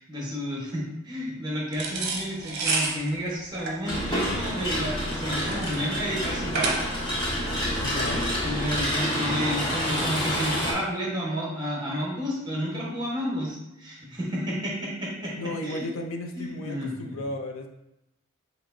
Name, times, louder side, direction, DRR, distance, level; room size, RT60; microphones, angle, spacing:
voice 1, 0.0-6.8 8.4-15.3 15.6-15.8 16.4-17.2, equal, 20° right, -4 dB, 1.1 m, -31 dB
sound 1, 1.7-7.2, right 3 dB, 50° right, 0.8 m, -30 dB
sound 2, 3.9-10.7, equal, 20° left, 1.5 m, -28 dB
voice 2, 7.8-8.3 15.4-17.7, left 1 dB, 65° left, 5 dB, 0.5 m, -34 dB
6.9 x 3.0 x 2.6 m, 0.89 s
head